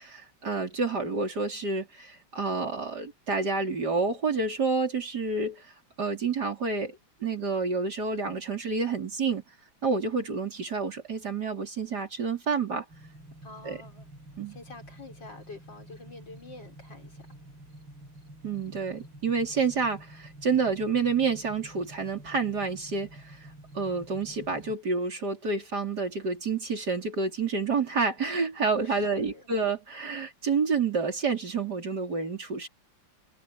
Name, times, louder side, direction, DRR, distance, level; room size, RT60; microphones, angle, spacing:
voice 1, 0.0-5.7 6.0-9.4 9.8-12.8 13.6-13.8 14.4-14.5 18.4-23.5 23.7-32.7, right 4 dB, 55° right, 4.4 m, -29 dB
sound 1, 12.9-24.7, right 1 dB, 80° right, 6.3 m, -49 dB
voice 2, 13.4-14.1 14.5-17.3 28.8-29.5, left 3 dB, 65° left, 6.4 m, -47 dB
omnidirectional pair, 2.1 m